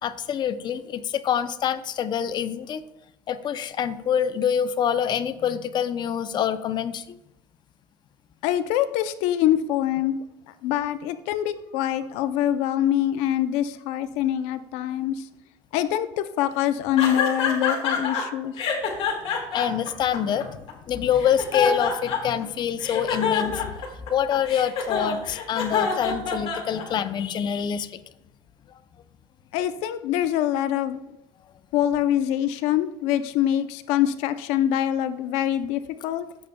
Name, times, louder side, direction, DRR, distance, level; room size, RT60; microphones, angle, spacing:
voice 1, 0.0-2.8 3.3-7.2 18.6-18.7 19.5-23.7 24.1-28.0, left 9 dB, 40° left, 12 dB, 0.5 m, -26 dB
voice 2, 8.4-15.3 15.7-18.5 29.5-31.0 31.7-36.3, left 11 dB, 85° left, 12 dB, 0.5 m, -24 dB
sound 1, 17.0-18.2 18.6-20.7 21.2-22.4 22.8-27.1, left 6 dB, 60° left, 1.9 m, -26 dB
14.0 x 6.8 x 2.2 m, 0.91 s
cardioid pair, 125°, 11 cm